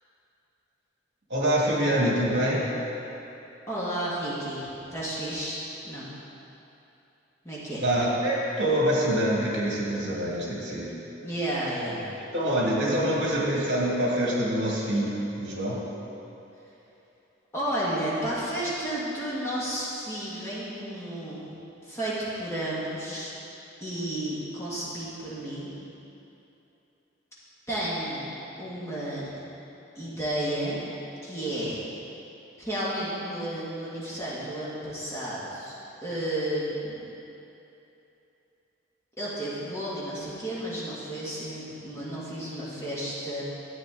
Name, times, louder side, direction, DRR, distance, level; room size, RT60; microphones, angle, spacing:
voice 1, 1.3-2.7 7.8-10.9 12.3-15.8, right 1 dB, 65° right, -4 dB, 2.1 m, -25 dB
voice 2, 3.7-6.1 7.4-7.8 11.2-12.1 13.0-13.3 17.5-21.5 21.8-23.3 23.8-25.7 27.7-28.3 28.6-29.3 30.0-30.8 31.2-31.8 32.6-35.7 36.0-37.0 39.2-43.4, right 1 dB, 15° left, -9 dB, 2.0 m, -32 dB
12.5 x 8.5 x 3.8 m, 2.9 s
head